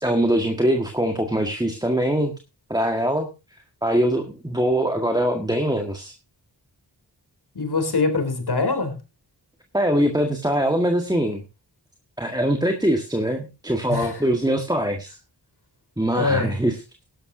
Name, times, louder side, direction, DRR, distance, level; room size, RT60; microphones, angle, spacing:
voice 1, 0.0-2.3 2.7-3.3 3.8-6.1 9.7-11.4 12.2-15.2 16.0-16.7, right 1 dB, 10° right, 4 dB, 1.7 m, -22 dB
voice 2, 7.6-9.0 13.9-14.2 16.1-16.5, left 3 dB, 70° left, 7 dB, 3.5 m, -23 dB
18.0 x 11.5 x 2.8 m, 0.28 s
wide cardioid pair, 65°, 40 cm